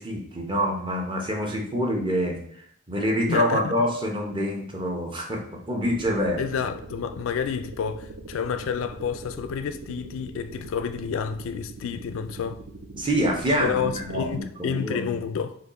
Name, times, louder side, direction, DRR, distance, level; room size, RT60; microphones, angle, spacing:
voice 1, 0.0-2.4 2.9-6.4 12.9-15.2, equal, 20° right, 0.7 m, -26 dB
voice 2, 3.3-3.7 6.4-12.6 13.6-15.6, left 7 dB, 60° left, 0.3 m, -29 dB
sound 1, 5.8-14.4, right 2 dB, 55° right, 0.6 m, -42 dB
4.1 x 3.0 x 4.1 m
head